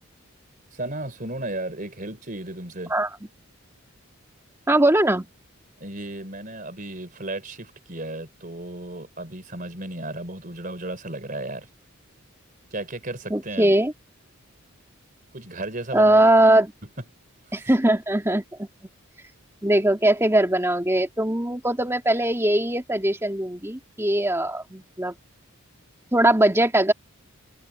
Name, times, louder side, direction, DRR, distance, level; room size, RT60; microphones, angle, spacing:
voice 1, 0.7-2.9 5.8-11.7 12.7-13.7 15.3-16.3 17.5-17.7, right 2 dB, 40° right, 3.8 m, -34 dB
voice 2, 4.7-5.3 13.3-13.9 15.9-16.7 17.5-18.7 19.6-25.1 26.1-26.9, right 1 dB, 10° right, 2.7 m, -20 dB
head